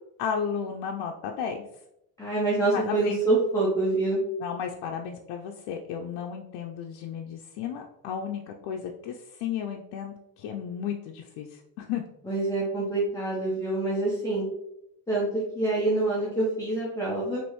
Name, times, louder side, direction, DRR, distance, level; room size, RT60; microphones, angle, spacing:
voice 1, 0.2-1.6 2.7-3.2 4.4-12.0, left 7 dB, 85° left, 1 dB, 0.6 m, -33 dB
voice 2, 2.2-4.2 12.2-14.5 15.1-17.4, right 2 dB, 10° left, -6 dB, 0.9 m, -26 dB
5.1 x 3.1 x 3.0 m, 0.80 s
cardioid pair, 150°, 42 cm